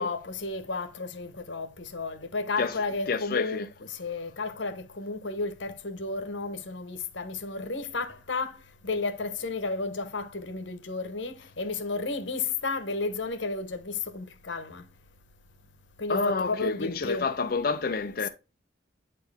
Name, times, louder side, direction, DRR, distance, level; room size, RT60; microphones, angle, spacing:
voice 1, 0.0-3.6 3.9-8.6 8.8-14.9 16.0-17.3, left 3 dB, 75° left, 1.1 m, -32 dB
voice 2, 3.1-3.7 16.1-18.3, left 4 dB, 50° left, 0.5 m, -29 dB
9.0 x 4.5 x 3.4 m
head